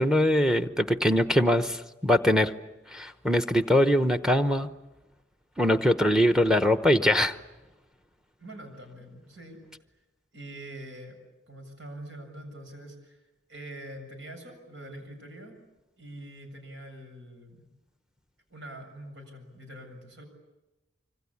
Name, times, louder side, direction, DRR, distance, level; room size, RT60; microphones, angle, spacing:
voice 1, 0.0-2.5 2.9-4.7 5.6-7.3, left 1 dB, 5° right, 10 dB, 0.9 m, -22 dB
voice 2, 8.4-9.6 9.9-10.0 10.3-11.2 11.5-15.6 16.0-17.7 18.5-20.2, right 1 dB, 80° right, 4 dB, 7.3 m, -44 dB
26.0 x 25.0 x 8.6 m, 1.0 s
head